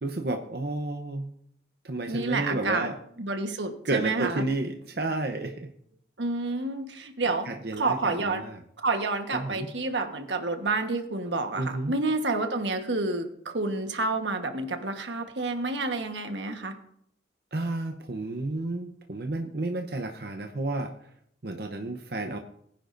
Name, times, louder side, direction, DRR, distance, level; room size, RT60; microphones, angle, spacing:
voice 1, 0.0-1.3 1.8-3.0 3.8-5.7 6.9-7.1 7.4-8.6 9.3-9.7 11.6-11.9 17.5-20.9 21.4-22.4, right 2 dB, 60° right, 5 dB, 0.8 m, -31 dB
voice 2, 2.1-2.9 3.2-4.5 6.2-7.5 7.7-8.4 8.8-16.7, right 3 dB, 85° right, 6 dB, 1.3 m, -29 dB
20.0 x 10.5 x 2.6 m, 0.70 s
head